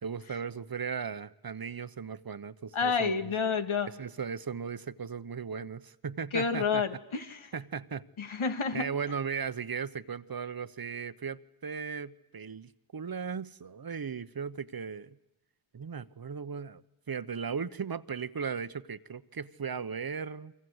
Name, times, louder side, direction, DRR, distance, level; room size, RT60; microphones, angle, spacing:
voice 1, 0.0-3.3 4.0-6.8 7.5-8.1 8.7-15.2 15.7-20.5, right 6 dB, 45° right, 1.0 m, -37 dB
voice 2, 2.7-3.9 6.3-7.5 8.2-8.9, left 5 dB, 75° left, 2.0 m, -29 dB
29.0 x 24.0 x 8.0 m
wide cardioid pair, 70°, 49 cm